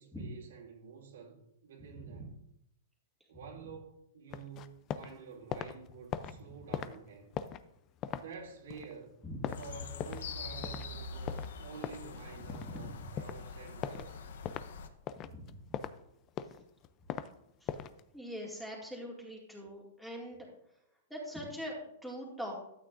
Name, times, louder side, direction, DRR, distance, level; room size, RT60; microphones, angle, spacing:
voice 1, 0.0-2.3 3.3-7.4 8.1-9.2 9.5-14.3, right 6 dB, 80° right, 2.6 m, -49 dB
voice 2, 1.9-2.3 9.2-9.4 12.4-13.1 15.2-15.6 17.6-17.7 18.1-20.5 21.1-22.5, equal, ahead, 2.3 m, -43 dB
sound 1, 4.3-5.2 5.4-10.4 10.6-10.9 11.2-12.8 13.2-13.4 13.8-14.1 14.4-14.7 15.1-16.0 16.3-17.3 17.7-18.0, left 9 dB, 30° left, 0.4 m, -40 dB
sound 2, 9.5-14.9, left 4 dB, 75° left, 0.9 m, -44 dB
12.5 x 8.6 x 2.6 m
hypercardioid pair, 150°, 0 cm